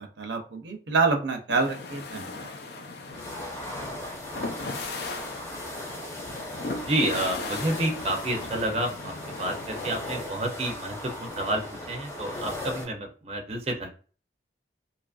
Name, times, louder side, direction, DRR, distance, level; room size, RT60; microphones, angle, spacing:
voice 1, 0.0-2.5, right 4 dB, 85° right, 5 dB, 0.6 m, -27 dB
sound 1, 1.5-10.0, left 3 dB, 60° left, 0.4 m, -38 dB
sound 2, 3.1-12.8, left 1 dB, 15° left, 0.6 m, -38 dB
voice 2, 6.8-9.1 9.4-13.9, right 1 dB, 35° right, 2 dB, 0.4 m, -29 dB
2.8 x 2.5 x 2.3 m, 0.38 s
head